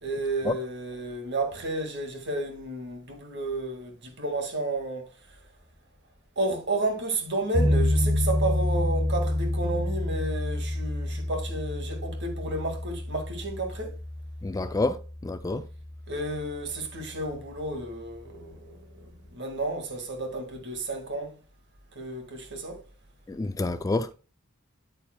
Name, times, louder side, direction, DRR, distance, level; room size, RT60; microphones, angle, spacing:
voice 1, 0.0-5.1 6.4-13.9 16.1-18.8 19.3-21.3 22.0-22.8, right 2 dB, 55° right, 1.9 m, -32 dB
sound 1, 7.5-14.6, left 1 dB, 45° left, 2.6 m, -27 dB
voice 2, 14.4-15.0 15.2-15.6 23.3-24.1, left 2 dB, 15° left, 0.3 m, -27 dB
9.0 x 8.7 x 2.2 m
head